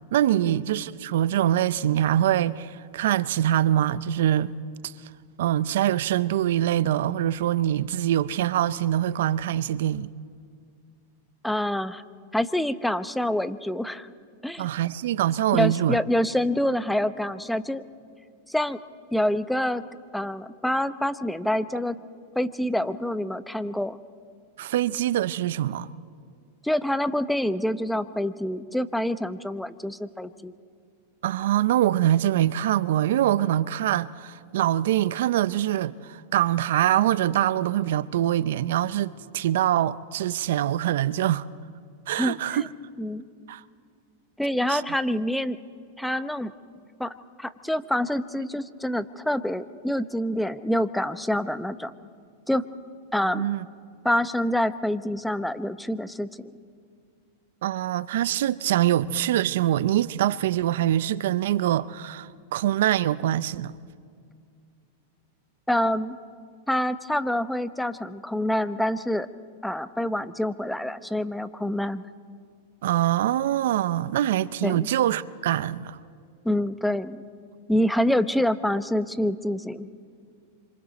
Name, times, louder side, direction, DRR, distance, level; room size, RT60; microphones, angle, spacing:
voice 1, 0.1-4.5 4.8-4.9 5.4-10.1 14.6-16.0 24.6-25.9 31.2-41.5 42.1-42.6 43.5-43.6 44.7-44.8 53.3-53.6 57.6-63.7 72.8-76.0, right 12 dB, 70° right, 0.5 m, -24 dB
voice 2, 11.4-12.0 12.3-14.1 14.4-14.7 15.5-17.8 18.5-18.8 19.1-19.8 20.1-22.0 22.3-24.0 26.6-30.5 42.2-42.7 43.0-43.2 44.4-45.6 46.0-46.5 47.0-47.1 47.4-51.9 52.5-52.6 53.1-53.4 54.0-56.3 65.7-66.2 66.7-69.3 69.6-72.0 74.6-74.9 76.4-77.2 77.7-79.9, left 1 dB, 5° left, 0.8 m, -26 dB
27.0 x 26.0 x 4.2 m
hypercardioid pair, 120°, 0 cm